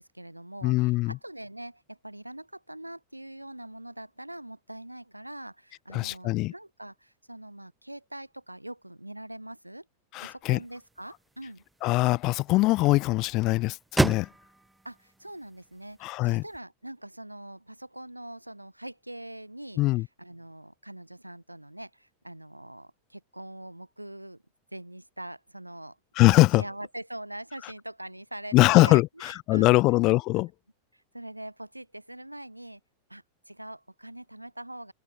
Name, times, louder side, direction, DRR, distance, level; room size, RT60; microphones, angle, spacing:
voice 1, 0.0-9.9 10.2-11.6 14.8-24.4 24.7-26.0 26.6-29.8 30.9-32.8 33.1-34.9, right 1 dB, 85° right, 2.2 m, -43 dB
voice 2, 0.6-1.2 5.9-6.5 10.1-10.6 11.8-14.3 16.0-16.4 19.8-20.1 26.2-26.6 28.5-30.5, left 20 dB, 40° left, 0.3 m, -22 dB
sound 1, 10.4-16.6, right 2 dB, 5° right, 1.7 m, -35 dB
open air
figure-of-eight pair, 90°, 0 cm